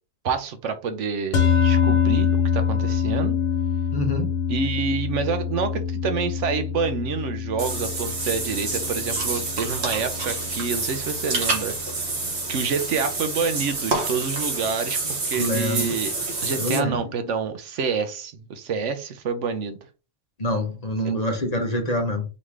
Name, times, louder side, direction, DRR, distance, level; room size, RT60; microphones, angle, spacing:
voice 1, 0.2-3.4 4.5-11.8 12.5-16.1 16.4-19.8, right 5 dB, 80° right, 1.1 m, -28 dB
sound 1, 1.3-11.8, left 7 dB, 85° left, 1.2 m, -25 dB
voice 2, 3.9-4.4 15.4-16.0 16.6-17.0 20.4-22.2, equal, 35° left, 1.0 m, -25 dB
Water / Bathtub (filling or washing), 7.6-16.8, right 3 dB, 65° right, 1.5 m, -28 dB
4.0 x 3.2 x 3.5 m
omnidirectional pair, 1.2 m